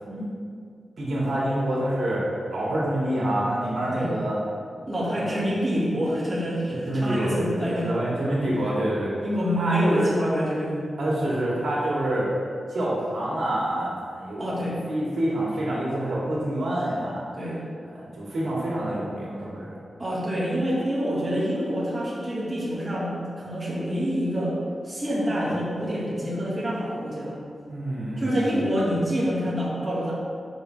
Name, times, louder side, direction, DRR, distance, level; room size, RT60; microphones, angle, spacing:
voice 1, 1.0-2.3 2.5-4.4 5.0-5.5 6.7-9.1 9.6-10.1 11.0-12.3 12.7-17.2 17.9-19.8 27.7-28.8, right 1 dB, 80° right, -6 dB, 2.2 m, -27 dB
voice 2, 4.9-7.9 9.2-10.8 14.4-14.8 17.3-17.6 20.0-24.6 24.8-27.4 28.2-30.1, equal, 20° right, -7 dB, 1.9 m, -26 dB
11.0 x 5.4 x 3.4 m, 2.2 s
wide cardioid pair, 150°, 0 cm